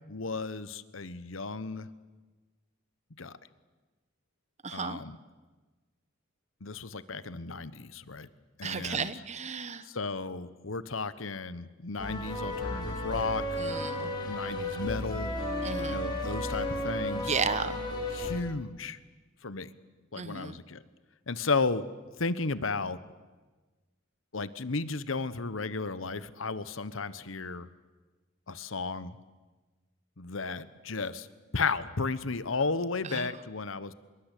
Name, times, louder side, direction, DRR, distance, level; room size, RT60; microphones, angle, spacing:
voice 1, 0.1-1.9 3.2-3.4 4.7-5.2 6.6-8.3 8.6-9.2 9.8-13.4 14.0-15.3 15.9-17.3 18.1-19.0 19.4-19.7 20.1-20.8 21.3-21.8 22.2-23.0 24.3-27.7 28.5-29.2 30.2-31.3 31.5-33.9, left 4 dB, 80° left, 15 dB, 1.1 m, -34 dB
voice 2, 4.6-5.0 8.6-9.8 13.6-14.1 15.6-16.1 17.3-17.8 20.2-20.6 33.1-33.3, right 5 dB, 35° right, 13 dB, 1.1 m, -33 dB
sound 1, 12.0-18.4, left 1 dB, 20° left, 5.1 m, -33 dB
26.0 x 22.5 x 8.4 m, 1.3 s
head